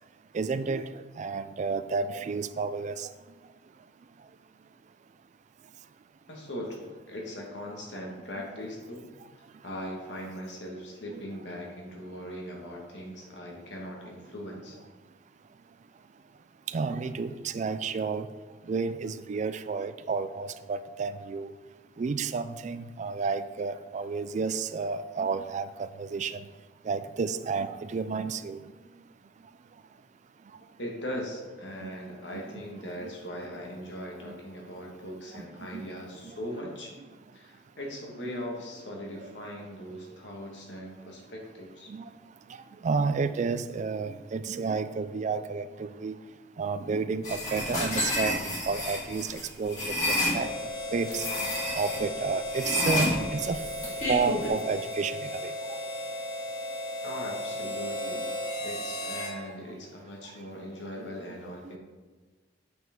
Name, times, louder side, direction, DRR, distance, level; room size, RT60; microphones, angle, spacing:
voice 1, 0.3-3.1 16.7-18.3 18.7-21.5 22.0-26.4 26.8-28.6 31.8-31.9 32.3-32.6 33.0-33.1 34.2-34.3 35.3-36.0 36.2-36.4 41.9-42.1 42.8-46.2 46.6-48.4 48.7-50.5 50.9-51.5 51.7-53.6 54.1-55.8 61.0-61.4 61.6-61.8, right 4 dB, 40° right, 12 dB, 0.3 m, -31 dB
voice 2, 6.3-9.1 9.6-14.8 30.8-36.9 37.3-41.9 57.0-58.2 58.6-61.8, equal, 70° left, -1 dB, 1.5 m, -40 dB
sound 1, 47.2-50.4 51.1-52.0 52.5-54.5, left 1 dB, 40° left, 2.5 m, -30 dB
Harmonica, 50.3-59.4, left 1 dB, 90° left, 1.5 m, -35 dB
7.8 x 5.6 x 3.7 m, 1.3 s
head